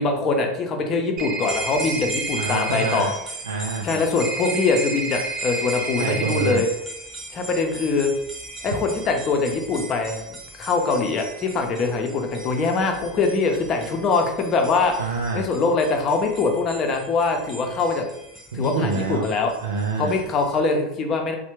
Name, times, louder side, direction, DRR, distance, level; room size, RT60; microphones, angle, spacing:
voice 1, 0.0-3.1 3.8-6.7 7.3-8.1 8.6-10.2 10.6-14.9 15.3-18.1 18.5-19.5 20.0-21.3, left 4 dB, 40° left, 4 dB, 0.6 m, -23 dB
sound 1, 1.2-3.0 4.2-6.6, right 3 dB, 45° right, 0.6 m, -30 dB
sound 2, 1.4-20.6, right 1 dB, 10° right, 0.9 m, -39 dB
voice 2, 2.3-3.1 3.4-4.0 6.0-6.6 15.0-15.5 18.5-19.3 19.6-20.2, right 3 dB, 85° right, 0 dB, 0.3 m, -26 dB
3.2 x 2.1 x 3.0 m, 0.77 s
hypercardioid pair, 80°, 0 cm